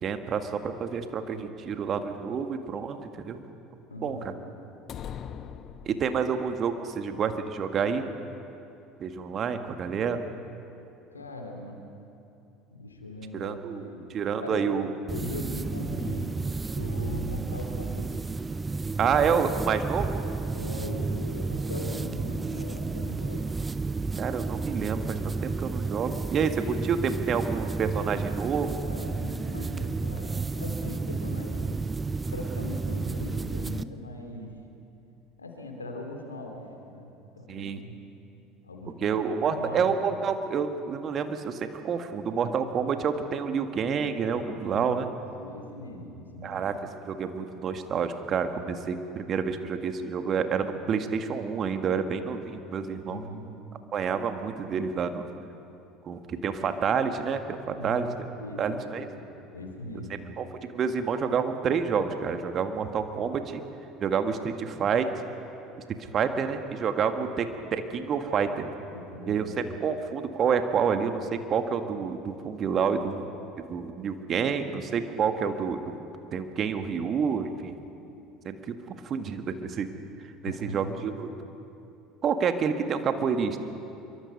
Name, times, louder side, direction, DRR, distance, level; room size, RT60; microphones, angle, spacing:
voice 1, 0.0-3.4 4.0-4.3 5.8-8.0 9.0-10.2 13.3-13.9 14.1-14.9 19.0-20.2 24.2-28.7 37.5-37.8 39.0-45.1 46.4-46.7 47.1-53.2 53.9-55.3 56.0-58.1 58.6-59.1 60.4-60.5 60.7-63.6 64.0-65.1 66.1-68.7 69.3-73.3 73.6-75.9 76.3-77.7 78.4-78.7 79.0-79.9 80.4-81.3 82.2-83.6, right 6 dB, 40° right, 7 dB, 1.7 m, -28 dB
voice 2, 3.9-4.4 11.1-11.8 12.7-14.1 14.4-14.6 15.1-16.4 16.7-18.2 19.0-19.3 20.5-23.5 28.8-31.9 32.3-34.5 35.4-38.1 38.6-39.9 44.6-46.6 53.1-53.7 57.8-58.1 58.4-60.3 68.9-69.6 80.5-80.9, left 1 dB, 85° left, 3 dB, 2.8 m, -40 dB
sound 1, 4.9-6.5, left 8 dB, 45° left, 1.0 m, -40 dB
sound 2, 15.1-33.8, right 4 dB, 20° right, 0.6 m, -32 dB
26.0 x 23.5 x 5.4 m, 2.8 s
figure-of-eight pair, 65°, 0 cm